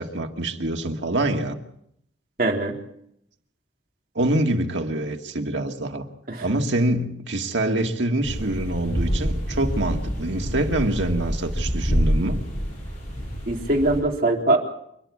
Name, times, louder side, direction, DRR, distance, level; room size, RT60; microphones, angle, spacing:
voice 1, 0.0-1.6 4.2-6.1 6.4-12.4, right 1 dB, 85° right, 3 dB, 2.2 m, -25 dB
voice 2, 2.4-2.8 6.3-6.4 13.5-14.6, right 2 dB, 50° right, 1 dB, 3.7 m, -21 dB
sound 1, 8.2-14.0, equal, 45° left, 7.7 m, -27 dB
28.0 x 11.0 x 8.6 m, 0.74 s
head